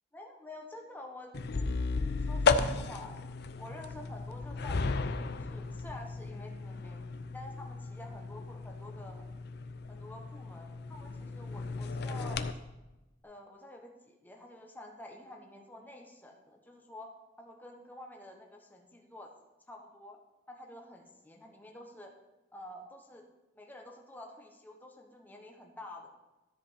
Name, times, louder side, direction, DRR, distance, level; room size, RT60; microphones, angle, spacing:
voice 1, 0.1-1.7 2.3-3.2 3.6-9.3 9.9-12.4 13.2-17.1 17.4-19.3 19.7-20.2 20.5-22.1 22.5-23.2 23.5-26.1, left 1 dB, 10° left, 1 dB, 1.1 m, -49 dB
sound 1, 1.3-12.5, left 4 dB, 55° left, 0.5 m, -34 dB
13.0 x 5.1 x 5.7 m, 1.0 s
head